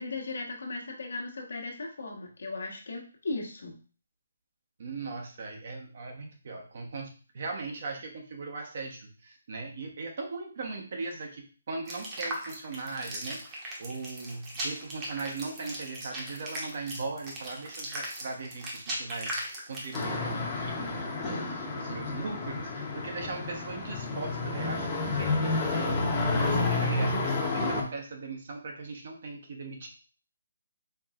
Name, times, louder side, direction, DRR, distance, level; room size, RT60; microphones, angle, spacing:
voice 1, 0.0-3.7, left 3 dB, 70° left, 1 dB, 1.1 m, -37 dB
voice 2, 4.8-29.9, right 3 dB, 50° right, 2 dB, 1.0 m, -39 dB
sound 1, 11.9-20.2, right 1 dB, 20° right, 1.0 m, -38 dB
sound 2, 19.9-27.8, left 3 dB, 20° left, 0.8 m, -30 dB
4.6 x 3.2 x 2.4 m, 0.38 s
hypercardioid pair, 155°, 0 cm